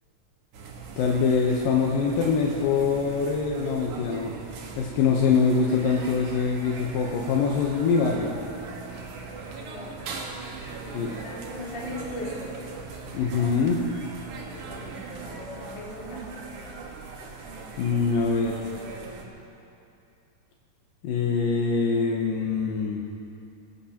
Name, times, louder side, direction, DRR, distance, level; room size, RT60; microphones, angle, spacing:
sound 1, 0.5-19.3, right 4 dB, 65° right, 2.8 m, -40 dB
voice 1, 1.0-4.4 4.8-8.3 10.9-11.1 13.1-13.8 17.8-18.6 21.0-23.0, left 5 dB, 80° left, -1 dB, 2.7 m, -24 dB
voice 2, 9.5-10.1 10.7-12.6 14.6-16.3, left 1 dB, 50° left, -7 dB, 4.8 m, -39 dB
26.5 x 15.0 x 2.9 m, 2.7 s
omnidirectional pair, 4.0 m